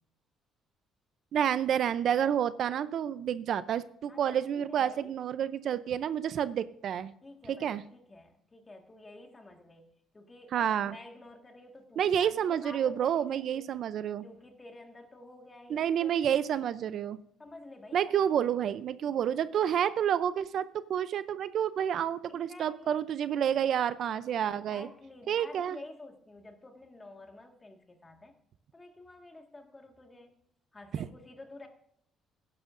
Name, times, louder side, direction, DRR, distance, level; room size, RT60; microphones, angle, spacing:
voice 1, 1.3-7.1 7.5-7.8 10.5-11.0 12.0-14.2 15.7-17.2 17.9-24.9 25.3-25.8 30.9-31.1, right 9 dB, 55° right, 14 dB, 0.5 m, -29 dB
voice 2, 4.1-5.1 7.2-13.7 14.2-16.1 17.4-18.5 22.3-23.1 24.4-28.4 28.7-30.3 30.7-31.7, left 2 dB, 20° left, 4 dB, 1.7 m, -50 dB
18.0 x 10.5 x 2.5 m, 0.71 s
cardioid pair, 135°, 0 cm